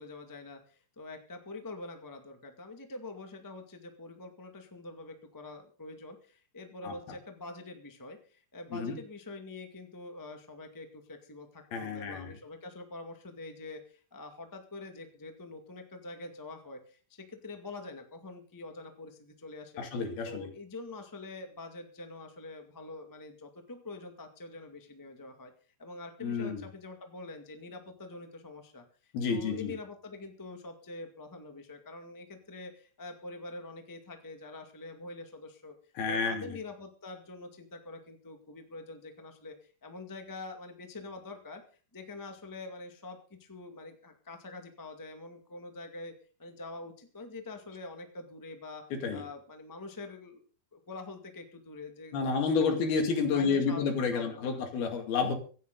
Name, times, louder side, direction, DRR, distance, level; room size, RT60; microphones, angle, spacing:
voice 1, 0.0-19.9 20.2-25.5 25.8-35.7 36.1-41.6 41.9-46.1 46.4-48.8 49.1-50.4 50.7-53.0 53.3-53.8 54.1-54.6, left 3 dB, 15° left, 5 dB, 0.7 m, -45 dB
voice 2, 11.7-12.3 19.8-20.5 26.2-26.6 29.1-29.7 36.0-36.6 48.9-49.2 52.1-55.3, left 5 dB, 80° left, 5 dB, 4.3 m, -30 dB
25.0 x 9.3 x 3.9 m, 0.39 s
omnidirectional pair, 4.3 m